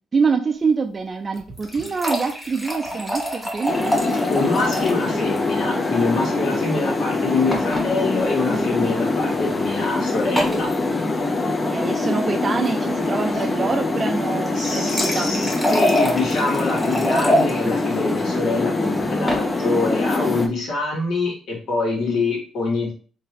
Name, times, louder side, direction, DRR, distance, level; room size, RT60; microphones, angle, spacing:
voice 1, 0.1-4.0 11.7-15.3, right 4 dB, 35° right, 4 dB, 0.4 m, -25 dB
sound 1, 1.3-5.1 5.4-5.5 5.7-5.8 7.5-7.9 8.8-9.0 10.4-10.6 14.4-17.5 19.0-19.4, equal, 10° left, 1.2 m, -25 dB
sound 2, 3.7-20.5, left 2 dB, 25° left, 0.6 m, -24 dB
voice 2, 4.3-10.7 14.5-22.9, left 3 dB, 75° left, -2 dB, 1.8 m, -25 dB
3.8 x 2.7 x 2.9 m, 0.39 s
cardioid pair, 90°, 0 cm